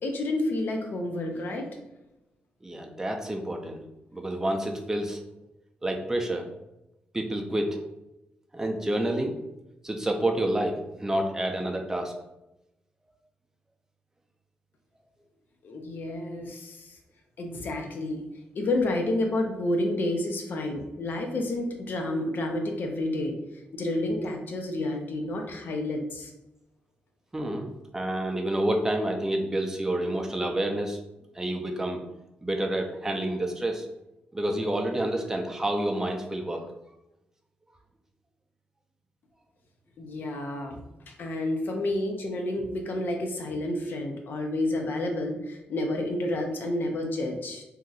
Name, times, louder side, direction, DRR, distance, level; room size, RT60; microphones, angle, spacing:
voice 1, 0.0-1.7 15.6-17.0 17.4-18.2 18.5-26.3 40.0-47.6, left 1 dB, 60° left, 3 dB, 0.7 m, -30 dB
voice 2, 2.6-3.8 4.1-5.2 5.8-6.5 7.1-7.8 8.5-9.3 9.8-12.1 27.3-31.0 31.3-32.0 32.4-33.9 34.3-36.7, right 1 dB, 15° right, 2 dB, 0.5 m, -28 dB
2.8 x 2.5 x 3.9 m, 0.92 s
cardioid pair, 100°, 4 cm